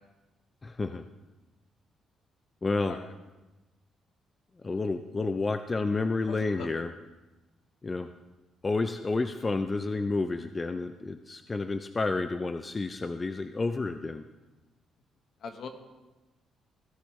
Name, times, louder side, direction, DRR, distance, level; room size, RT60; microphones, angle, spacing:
voice 1, 0.6-1.0 2.6-3.0 4.6-6.9 7.8-8.1 8.6-14.2, left 3 dB, 25° left, 9 dB, 0.5 m, -30 dB
voice 2, 6.3-6.8 15.4-15.7, left 5 dB, 60° left, 6 dB, 1.3 m, -41 dB
16.0 x 10.0 x 3.2 m, 1.1 s
cardioid pair, 90°, 0 cm